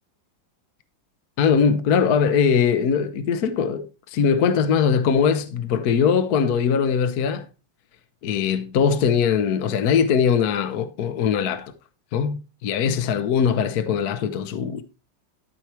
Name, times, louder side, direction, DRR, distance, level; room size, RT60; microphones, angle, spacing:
voice 1, 1.4-7.5 8.2-11.7 12.1-14.8, left 7 dB, 60° left, 1.2 m, -21 dB
13.0 x 4.7 x 4.4 m
omnidirectional pair, 2.0 m